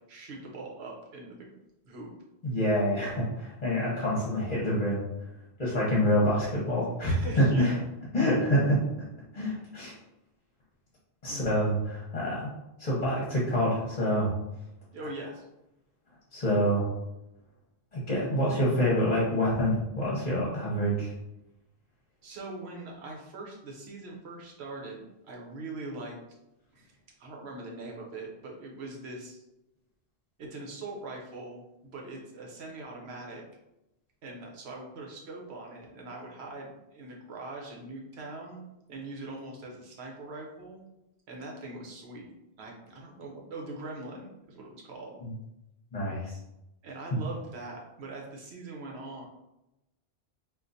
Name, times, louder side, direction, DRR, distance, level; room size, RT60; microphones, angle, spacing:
voice 1, 0.1-1.5 1.8-2.1 7.1-7.8 11.3-11.5 14.9-15.5 22.2-26.2 26.7-26.9 27.2-29.4 30.4-33.4 34.2-38.6 38.9-40.8 41.3-45.2 46.8-49.3, right 2 dB, 80° right, -1 dB, 1.0 m, -42 dB
voice 2, 2.4-5.0 5.6-7.7 8.1-8.8 9.3-9.9 11.2-12.5 12.8-14.3 16.3-16.8 17.9-21.1 45.2-45.3 45.9-46.4, equal, 40° left, -6 dB, 0.9 m, -26 dB
3.7 x 2.5 x 2.6 m, 0.90 s
omnidirectional pair, 1.1 m